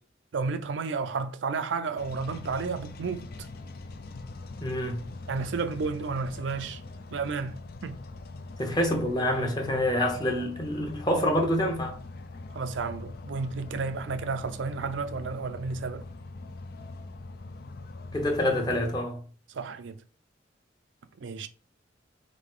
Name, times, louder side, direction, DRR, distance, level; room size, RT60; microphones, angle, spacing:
voice 1, 0.3-3.2 5.3-6.8 7.1-8.0 12.5-16.0 19.5-20.0 21.2-21.5, right 4 dB, 80° right, 0.5 m, -32 dB
sound 1, 2.0-19.0, left 2 dB, 55° left, 0.5 m, -42 dB
voice 2, 4.6-5.1 8.6-12.0 18.1-19.2, left 1 dB, 20° left, 0.9 m, -27 dB
4.0 x 3.2 x 3.7 m
head